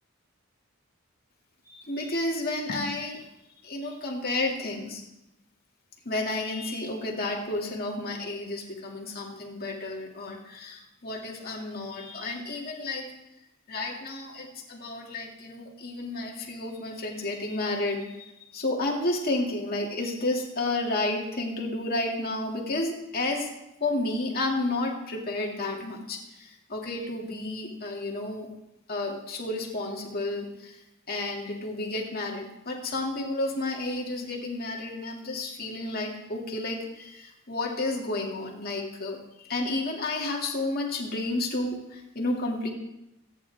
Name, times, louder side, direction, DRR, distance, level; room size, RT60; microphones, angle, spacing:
voice 1, 1.6-3.3 3.6-5.0 6.0-13.1 13.7-23.5 23.8-28.5 28.9-42.7, left 2 dB, 45° left, -1 dB, 2.4 m, -31 dB
27.0 x 9.8 x 3.6 m, 0.90 s
head